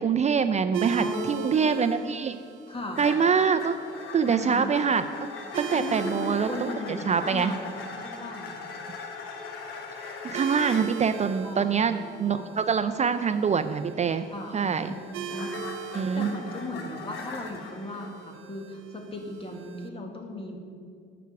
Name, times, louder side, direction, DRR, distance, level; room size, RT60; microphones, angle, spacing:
voice 1, 0.0-2.3 3.0-3.8 4.1-5.3 5.6-6.7 7.1-7.5 10.2-14.2 14.5-14.9 15.9-16.3, right 6 dB, 35° right, 10 dB, 0.4 m, -25 dB
sound 1, 0.7-19.9, right 6 dB, 90° right, 0.8 m, -41 dB
voice 2, 1.0-2.1 2.7-3.0 4.2-4.7 5.7-7.7 8.0-8.7 11.4-12.5 14.3-15.6 15.9-20.6, left 1 dB, 30° left, 2 dB, 1.8 m, -37 dB
sound 2, 2.9-10.9 14.3-18.1, left 5 dB, 85° left, 1.1 m, -40 dB
9.4 x 6.0 x 7.0 m, 2.2 s
cardioid pair, 90°, 20 cm